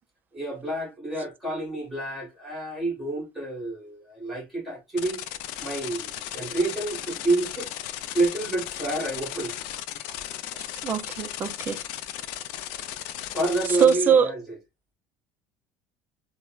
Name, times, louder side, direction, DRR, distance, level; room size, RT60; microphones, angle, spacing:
voice 1, 0.3-5.2 5.6-7.7 8.1-9.5 13.3-14.4, right 2 dB, ahead, 1.4 m, -29 dB
sound 1, 5.0-13.9, left 12 dB, 75° left, 0.4 m, -36 dB
voice 2, 10.8-11.8 13.8-14.3, right 7 dB, 20° right, 0.3 m, -21 dB
4.2 x 2.0 x 2.2 m
cardioid pair, 180°, 10 cm